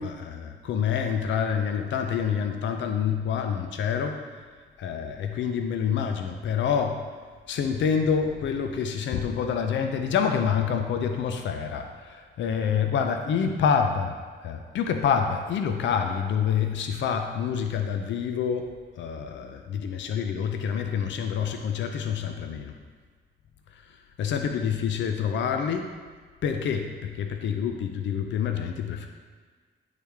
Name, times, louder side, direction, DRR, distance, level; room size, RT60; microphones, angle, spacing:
voice 1, 0.0-4.2 4.8-7.0 7.5-14.1 14.4-22.7 23.7-25.9 26.4-29.1, left 7 dB, 70° left, 5 dB, 0.5 m, -27 dB
8.7 x 3.2 x 3.4 m, 1.5 s
cardioid pair, 75°, 20 cm